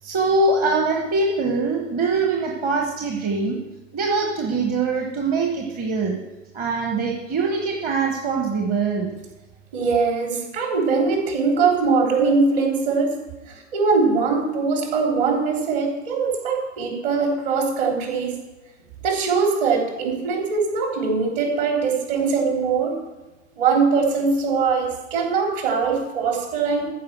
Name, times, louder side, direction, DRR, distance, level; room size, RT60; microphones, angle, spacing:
voice 1, 0.0-3.6 3.9-6.2 6.5-9.2, right 3 dB, 25° right, 1 dB, 1.3 m, -23 dB
voice 2, 9.7-13.1 13.5-18.4 19.0-23.0 23.6-26.9, right 4 dB, 45° right, 1 dB, 3.4 m, -21 dB
14.0 x 5.4 x 7.5 m, 1.1 s
figure-of-eight pair, 100°, 36 cm